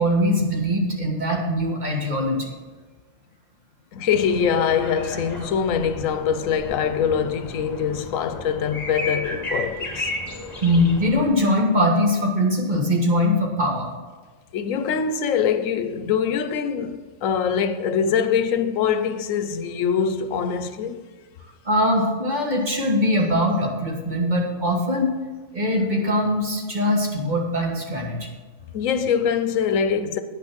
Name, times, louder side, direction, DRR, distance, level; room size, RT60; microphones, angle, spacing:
voice 1, 0.0-2.5 10.6-13.9 21.7-25.1 25.5-28.3, left 1 dB, 35° right, 1.7 m, -22 dB
voice 2, 3.9-10.1 14.5-21.0 28.7-30.2, left 7 dB, 90° left, 1.1 m, -23 dB
sound 1, 4.1-11.3, left 1 dB, 30° left, 1.7 m, -34 dB
9.5 x 6.0 x 6.1 m
omnidirectional pair, 1.3 m